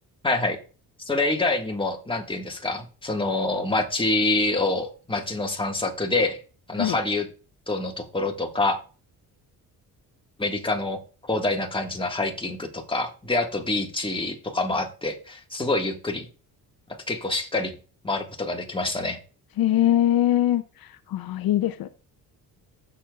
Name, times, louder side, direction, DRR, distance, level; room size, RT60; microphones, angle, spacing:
voice 1, 0.2-0.6 1.1-6.4 6.7-7.3 7.7-8.8 10.4-16.3 17.1-17.7 18.0-19.2, left 2 dB, 15° left, 1.8 m, -26 dB
voice 2, 19.6-20.6 21.1-21.9, left 12 dB, 65° left, 0.6 m, -21 dB
15.5 x 6.9 x 2.4 m
cardioid pair, 80°, 38 cm